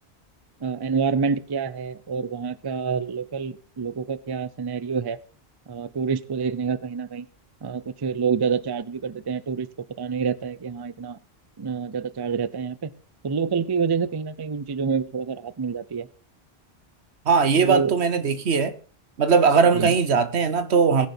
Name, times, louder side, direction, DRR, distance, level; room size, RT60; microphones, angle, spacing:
voice 1, 0.6-5.2 5.7-7.3 7.6-9.7 10.0-11.2 11.6-12.9 13.2-16.1 17.6-17.9 19.7-19.9, right 5 dB, 30° right, 0.5 m, -27 dB
voice 2, 17.2-18.7 19.2-21.1, right 5 dB, 85° right, 1.3 m, -19 dB
19.5 x 6.6 x 4.4 m
omnidirectional pair, 1.1 m